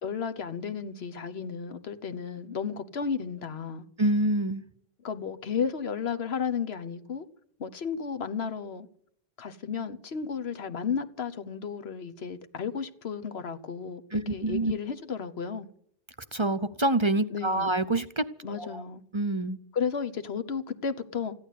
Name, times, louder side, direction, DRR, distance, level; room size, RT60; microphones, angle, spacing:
voice 1, 0.0-3.9 5.0-7.3 7.6-8.9 9.4-14.0 14.3-15.7 17.3-17.7 18.4-19.0 19.7-21.3, left 6 dB, 80° left, 1.3 m, -33 dB
voice 2, 4.0-4.6 14.1-14.7 16.3-18.2 18.6-18.8 19.1-19.6, right 2 dB, 35° right, 0.6 m, -26 dB
15.0 x 11.5 x 8.3 m
omnidirectional pair, 1.0 m